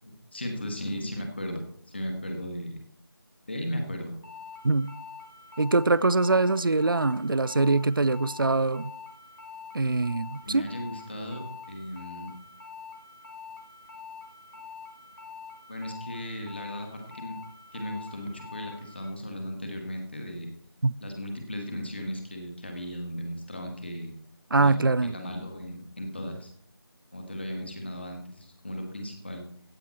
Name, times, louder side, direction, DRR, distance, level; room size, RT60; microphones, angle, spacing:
voice 1, 0.0-2.8 3.5-4.1 10.4-12.3 15.7-17.4 17.7-20.5 21.0-24.1 24.5-26.5 27.1-29.5, equal, 25° left, 1.9 m, -36 dB
sound 1, 4.2-19.0, left 5 dB, 55° left, 4.2 m, -45 dB
voice 2, 5.6-8.9 9.7-10.6 20.8-21.0 24.5-25.1, right 3 dB, 60° right, 0.5 m, -23 dB
15.0 x 9.1 x 4.3 m
figure-of-eight pair, 175°, 13 cm